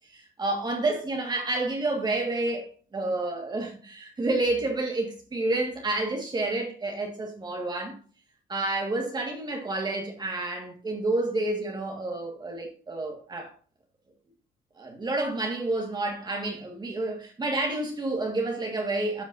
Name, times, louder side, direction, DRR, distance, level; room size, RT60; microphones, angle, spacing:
voice 1, 0.1-8.0 8.5-13.5 14.8-19.2, right 2 dB, 25° right, 1.7 m, -29 dB
13.0 x 5.2 x 2.6 m
cardioid pair, 110°, 17 cm